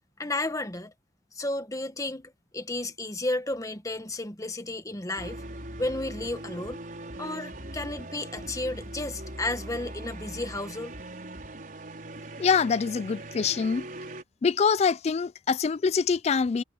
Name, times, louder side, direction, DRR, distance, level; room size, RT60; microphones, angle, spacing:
voice 1, 0.2-0.9 1.3-5.4 5.8-6.8 7.2-10.9, left 2 dB, 20° left, 1.5 m, -33 dB
sound 1, 5.2-14.2, right 1 dB, 50° right, 5.1 m, -40 dB
voice 2, 12.4-13.9 14.4-16.6, left 5 dB, 35° left, 0.3 m, -25 dB
head